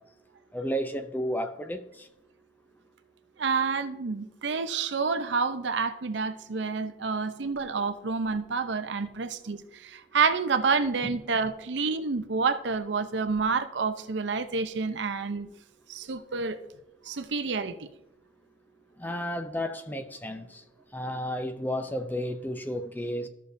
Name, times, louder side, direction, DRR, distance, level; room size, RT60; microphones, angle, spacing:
voice 1, 0.5-2.1 11.0-11.1 19.0-20.6 20.9-23.3, equal, 10° left, 0.5 m, -32 dB
voice 2, 3.4-15.5 15.9-16.6 17.0-17.9, right 4 dB, 80° right, 0.6 m, -28 dB
14.0 x 6.5 x 2.6 m
head